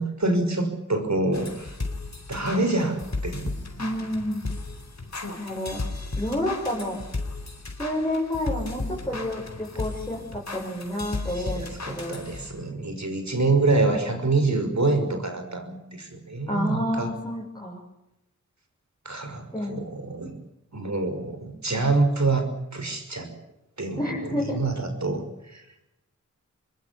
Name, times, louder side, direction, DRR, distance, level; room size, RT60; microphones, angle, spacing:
voice 1, 0.0-1.7 2.3-3.5 11.3-17.1 19.0-20.3 20.7-23.3 23.8-25.6, right 3 dB, 60° right, 6 dB, 5.9 m, -26 dB
sound 1, 1.3-12.7, left 3 dB, 60° left, 4.5 m, -35 dB
voice 2, 3.8-4.4 5.4-5.8 6.2-7.0 7.8-12.2 16.5-17.8 19.5-19.7 24.0-24.6, left 1 dB, 15° left, -4 dB, 6.9 m, -29 dB
25.5 x 21.5 x 7.2 m, 0.88 s
wide cardioid pair, 55°, 31 cm